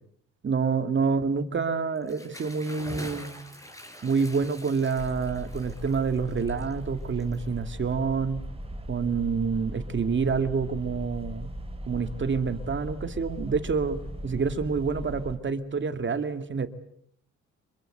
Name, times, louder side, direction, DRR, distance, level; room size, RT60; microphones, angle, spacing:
voice 1, 0.4-3.3 4.0-8.4 8.9-11.5 11.9-16.7, right 5 dB, 40° right, 10 dB, 2.4 m, -27 dB
Bathtub (filling or washing) / Splash splatter, 2.0-7.9, equal, 10° left, 5.9 m, -45 dB
sound 1, 5.0-15.4, equal, 20° right, 3.1 m, -38 dB
26.5 x 23.0 x 8.1 m, 0.68 s
cardioid pair, 90°, 30 cm